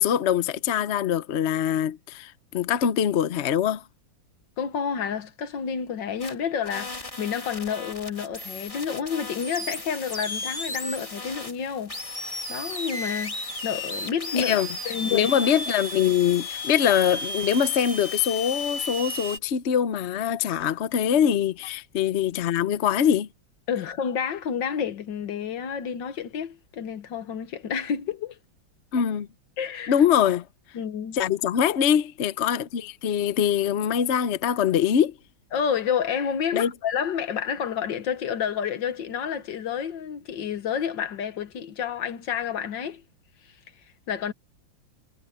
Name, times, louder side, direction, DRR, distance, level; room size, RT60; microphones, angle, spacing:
voice 1, 0.0-3.8 14.4-14.7 15.1-23.3 28.9-29.3 29.9-30.4 31.1-35.1 36.5-36.7, left 9 dB, 55° left, 0.8 m, -23 dB
voice 2, 4.6-12.0 12.5-14.5 14.8-15.4 23.7-28.4 29.6-30.0 30.7-31.2 35.5-43.0 44.1-44.3, left 7 dB, 70° left, 1.9 m, -29 dB
sound 1, 6.2-6.3 6.7-19.4, left 2 dB, 15° left, 2.4 m, -34 dB
omnidirectional pair, 2.1 m